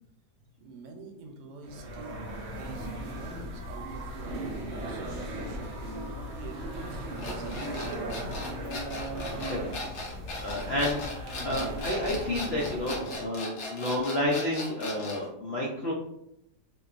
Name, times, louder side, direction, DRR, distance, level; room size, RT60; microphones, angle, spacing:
voice 1, 0.4-2.1 2.5-4.5 4.8-7.6, right 3 dB, 90° right, 3 dB, 1.2 m, -45 dB
sound 1, 1.6-13.3, right 1 dB, 70° right, 0.7 m, -37 dB
sound 2, 7.2-15.3, left 2 dB, 60° left, 0.8 m, -38 dB
voice 2, 10.4-15.9, left 1 dB, 85° left, -4 dB, 0.5 m, -30 dB
2.8 x 2.2 x 2.4 m, 0.79 s
omnidirectional pair, 1.7 m